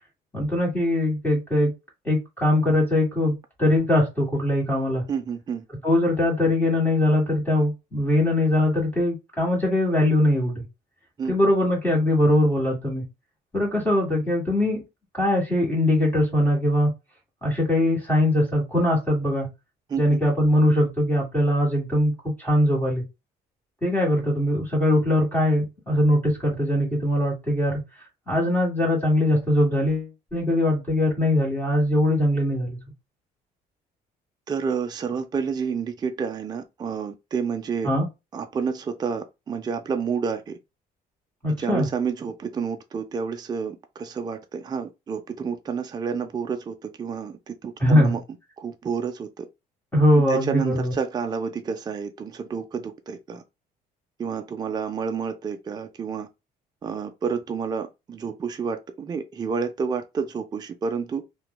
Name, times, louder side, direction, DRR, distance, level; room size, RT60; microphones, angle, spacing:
voice 1, 0.3-1.7 2.0-5.0 5.8-10.6 11.3-13.0 13.5-14.8 15.1-16.9 17.4-19.5 20.0-23.0 23.8-27.8 28.3-32.8 37.8-38.1 41.4-41.9 47.8-48.2 49.9-50.9, left 1 dB, 10° left, 1.7 m, -21 dB
voice 2, 5.1-5.6 11.2-11.3 19.9-20.2 34.5-37.9 38.3-40.6 41.5-48.2 48.6-49.5 50.3-53.4 54.2-56.3 56.8-61.2, right 6 dB, 25° right, 0.4 m, -29 dB
3.0 x 2.2 x 2.3 m
cardioid pair, 110°, 17 cm